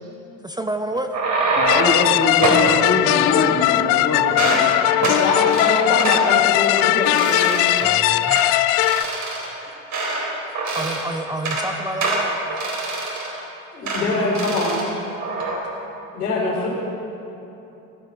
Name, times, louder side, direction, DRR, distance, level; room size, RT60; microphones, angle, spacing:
voice 1, 0.4-1.2 7.8-8.5 10.7-12.3, right 1 dB, 10° right, 6 dB, 0.6 m, -29 dB
sound 1, 0.9-2.0 2.4-2.7 3.3-4.0 4.3-4.7 5.0-5.2 5.5-5.7 6.0-6.2 6.7-6.9 7.2-7.9 8.3-8.5 8.8-10.3 10.6-11.0 11.3-11.7 12.0-13.4 13.9-14.1 14.4-14.9 15.2-15.6, right 3 dB, 40° right, 4.4 m, -24 dB
voice 2, 1.6-4.8, left 3 dB, 30° left, 1 dB, 2.1 m, -23 dB
sound 2, 1.7-9.0, left 16 dB, 55° left, 0.5 m, -19 dB
voice 3, 5.2-7.8 13.7-15.0 16.1-16.7, left 2 dB, 80° left, -3 dB, 3.9 m, -23 dB
17.0 x 12.5 x 5.4 m, 2.9 s
hypercardioid pair, 70°, 45 cm